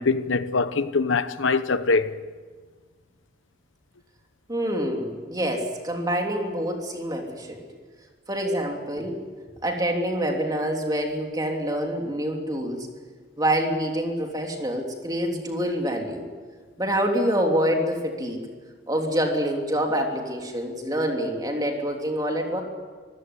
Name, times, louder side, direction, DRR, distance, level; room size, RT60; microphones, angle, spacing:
voice 1, 0.0-2.1, left 4 dB, 80° left, 0.9 m, -23 dB
voice 2, 4.5-7.6 8.3-9.2 9.6-12.9 13.4-16.3 16.8-18.4 18.9-22.6, equal, 20° right, 3.2 m, -26 dB
25.5 x 16.0 x 9.8 m
head